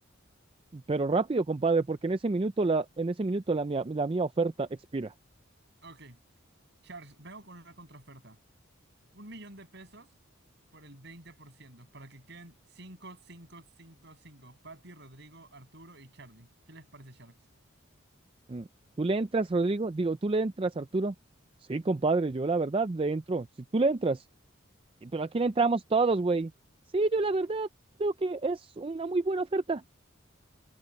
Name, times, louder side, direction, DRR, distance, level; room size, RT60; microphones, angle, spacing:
voice 1, 0.7-4.7 4.9-5.1 18.5-18.7 19.0-21.1 21.7-23.5 23.7-24.2 25.0-26.5 26.9-27.7 28.0-29.8, right 3 dB, 25° right, 0.4 m, -28 dB
voice 2, 5.8-6.2 6.8-8.4 9.1-10.1 10.7-17.4, right 2 dB, 60° right, 7.7 m, -50 dB
head